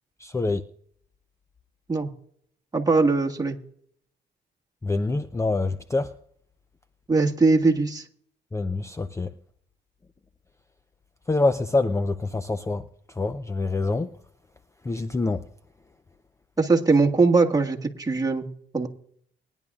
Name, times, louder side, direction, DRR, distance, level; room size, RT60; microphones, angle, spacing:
voice 1, 0.2-0.6 4.8-6.1 8.5-9.3 11.3-12.8 13.2-14.1 14.9-15.4, left 3 dB, 15° left, 11 dB, 0.5 m, -25 dB
voice 2, 2.7-3.6 7.1-8.0 16.6-18.5 18.7-18.9, right 3 dB, 20° right, 2 dB, 1.7 m, -21 dB
21.5 x 10.5 x 2.4 m, 0.64 s
cardioid pair, 90°, 20 cm